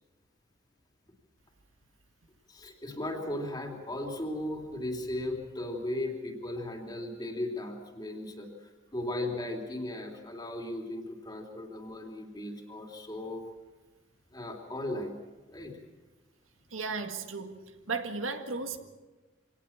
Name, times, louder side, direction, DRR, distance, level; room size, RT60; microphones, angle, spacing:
voice 1, 2.5-13.4 14.3-15.2 15.5-15.7, left 1 dB, 20° left, 2 dB, 3.1 m, -36 dB
voice 2, 16.7-17.6 17.9-18.8, right 4 dB, 85° right, 6 dB, 1.9 m, -34 dB
25.5 x 18.5 x 7.3 m, 1.2 s
head